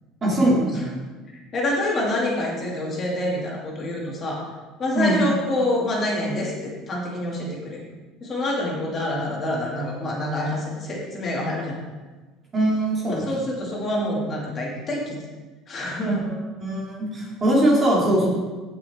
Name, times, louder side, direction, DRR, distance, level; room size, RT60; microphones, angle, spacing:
voice 1, 0.2-0.8 4.9-5.2 12.5-13.2 16.1-16.3 16.6-18.3, right 1 dB, 20° right, -4 dB, 2.3 m, -21 dB
voice 2, 1.5-4.5 4.8-7.8 8.2-11.8 13.2-15.2 15.7-16.3, left 1 dB, 25° left, -3 dB, 2.3 m, -26 dB
16.0 x 5.9 x 3.6 m, 1.3 s
cardioid pair, 170°, 0 cm